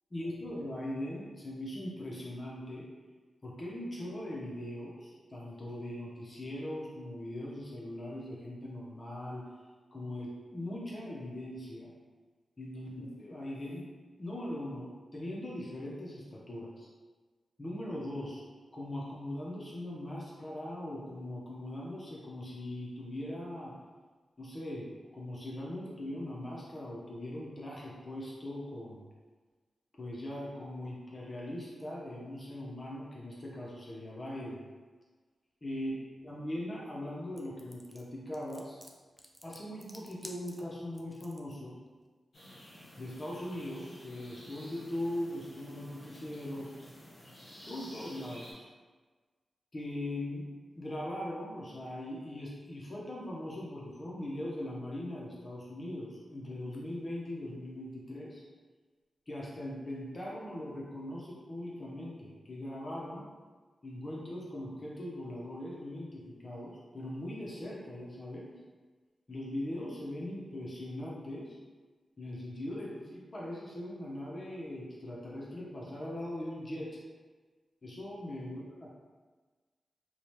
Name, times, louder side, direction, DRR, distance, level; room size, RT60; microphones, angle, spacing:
voice 1, 0.1-2.9 3.4-9.4 9.9-11.9 12.6-13.9 14.2-16.9 17.6-18.4 18.7-23.7 24.4-29.0 30.0-34.6 35.6-35.9 36.2-38.8 39.4-41.8 43.0-46.7 47.6-48.7 49.7-50.5 50.8-58.4 59.3-63.3 63.8-68.5 69.3-71.6 72.2-77.0 77.8-78.9, left 1 dB, 35° left, -5 dB, 0.6 m, -40 dB
sound 1, 37.4-41.5, right 1 dB, 10° right, 0.3 m, -52 dB
sound 2, 42.3-48.5, equal, 50° left, 1.1 m, -52 dB
2.7 x 2.1 x 3.0 m, 1.4 s
cardioid pair, 80°, 0 cm